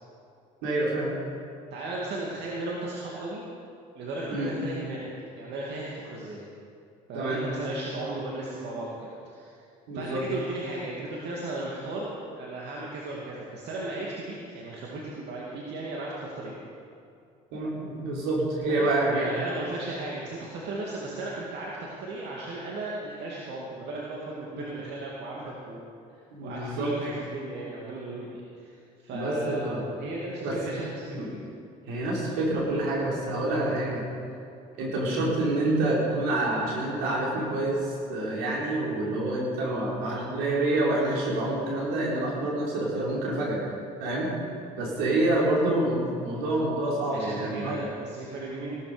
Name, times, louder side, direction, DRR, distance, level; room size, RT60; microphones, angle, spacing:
voice 1, 0.6-1.1 4.3-4.5 7.1-7.4 9.9-10.2 17.5-19.3 24.5-24.6 25.3-25.5 26.3-26.9 29.1-29.8 30.4-31.4 31.9-34.0 34.8-43.6 44.0-44.3 44.8-47.8, right 2 dB, 80° right, -4 dB, 4.5 m, -27 dB
voice 2, 1.7-3.4 3.9-5.1 5.3-6.4 7.1-9.5 9.9-16.5 18.7-31.4 47.1-48.8, right 2 dB, 65° right, -4 dB, 2.4 m, -36 dB
17.5 x 12.5 x 5.2 m, 2.5 s
supercardioid pair, 70°, 19 cm